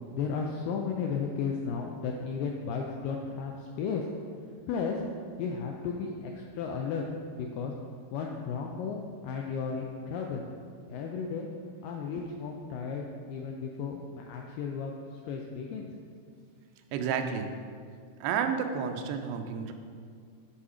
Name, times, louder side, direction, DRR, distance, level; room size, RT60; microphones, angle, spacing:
voice 1, 0.1-4.0 4.7-5.0 5.4-7.0 7.4-7.7 8.1-10.4 10.9-11.5 11.8-14.9 15.3-15.9, left 5 dB, 85° left, 1 dB, 1.9 m, -34 dB
voice 2, 16.9-17.5 18.2-19.7, right 7 dB, 90° right, 6 dB, 2.5 m, -31 dB
8.5 x 4.2 x 4.9 m, 2.1 s
omnidirectional pair, 4.5 m